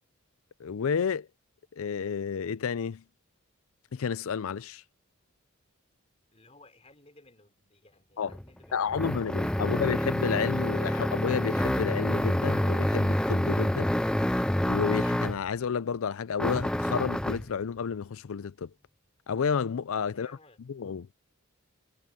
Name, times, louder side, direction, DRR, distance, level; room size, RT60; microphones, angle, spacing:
voice 1, 0.6-1.3 1.8-3.0 3.9-4.8 8.2-8.3 8.7-13.9 14.7-18.7 19.3-20.3 20.7-21.1, left 6 dB, 70° left, 0.4 m, -31 dB
voice 2, 6.3-9.3 20.1-20.6, left 2 dB, 30° left, 3.8 m, -58 dB
sound 1, 8.3-15.5 16.4-17.5, left 1 dB, 5° left, 0.3 m, -27 dB
head